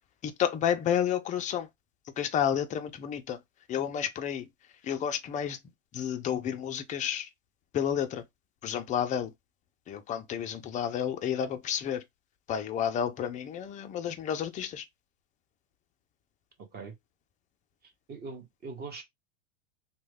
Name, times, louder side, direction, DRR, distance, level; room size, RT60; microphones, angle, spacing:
voice 1, 0.2-1.7 2.2-3.4 3.7-4.5 4.8-5.6 5.9-7.3 7.7-8.2 8.6-9.3 9.9-12.0 12.5-14.9, left 9 dB, 20° left, 0.4 m, -30 dB
voice 2, 16.6-16.9 17.8-19.0, right 4 dB, 25° right, 1.1 m, -42 dB
3.1 x 2.2 x 3.4 m
hypercardioid pair, 120°, 37 cm